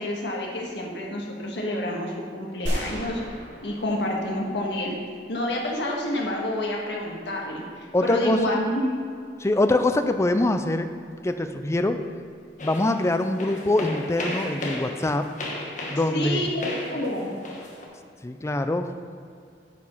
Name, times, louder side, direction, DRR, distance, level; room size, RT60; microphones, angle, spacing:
voice 1, 0.0-3.2 3.6-5.0 5.3-8.9 16.1-17.3, left 1 dB, 75° left, -1 dB, 1.5 m, -28 dB
sound 1, 2.7-5.0, equal, 90° right, 2.4 m, -33 dB
voice 2, 7.9-8.4 9.4-10.9 11.2-12.0 12.6-15.3 15.9-16.4 18.2-18.9, left 2 dB, 15° left, 8 dB, 0.4 m, -24 dB
sound 2, 12.6-17.9, left 1 dB, 45° left, 1.3 m, -34 dB
9.4 x 5.2 x 5.5 m, 2.4 s
head